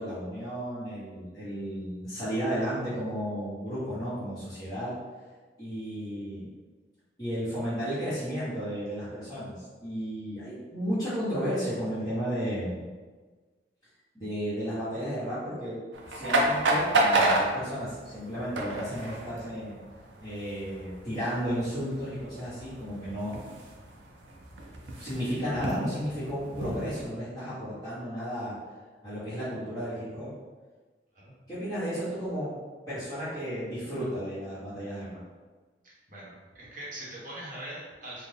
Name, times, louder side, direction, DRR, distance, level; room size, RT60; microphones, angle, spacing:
voice 1, 0.0-4.9 5.6-6.5 7.2-12.9 14.1-15.7 16.1-19.8 20.2-23.3 25.0-28.5 29.0-30.3 31.5-32.5 32.9-35.2, equal, 20° left, -17 dB, 1.3 m, -33 dB
sound 1, 15.9-27.1, right 2 dB, 85° right, 0.6 m, -31 dB
voice 2, 35.8-38.3, right 1 dB, 45° right, -6 dB, 1.0 m, -42 dB
4.2 x 2.2 x 3.4 m, 1.4 s
head